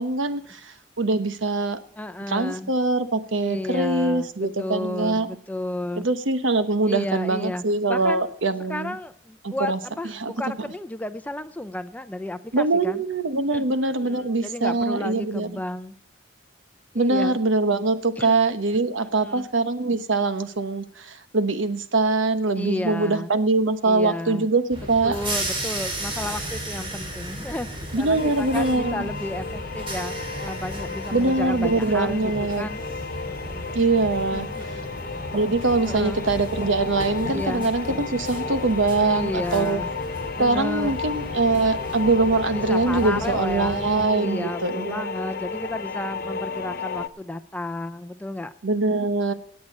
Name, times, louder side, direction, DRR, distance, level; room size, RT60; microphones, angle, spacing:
voice 1, 0.0-1.8 2.3-5.3 6.0-9.0 9.4-9.8 10.2-10.3 12.5-15.6 16.9-25.2 27.9-29.1 31.1-32.7 33.7-34.5 35.3-39.8 40.4-45.2 48.6-49.3, right 3 dB, 85° right, 10 dB, 1.1 m, -23 dB
voice 2, 2.0-2.7 3.4-6.1 6.8-7.6 7.9-8.3 8.7-13.0 13.5-15.9 16.9-17.4 18.2-18.3 18.7-19.5 22.6-23.3 23.8-24.5 25.0-32.8 33.2-33.7 34.3-34.9 35.8-36.2 37.3-37.6 39.0-39.9 40.4-41.0 42.5-48.5, left 1 dB, 10° left, 11 dB, 0.5 m, -32 dB
sound 1, 24.7-44.0, right 1 dB, 30° right, 3.9 m, -35 dB
sound 2, 28.2-47.1, left 4 dB, 50° left, 0.6 m, -33 dB
17.5 x 8.6 x 5.3 m, 0.66 s
head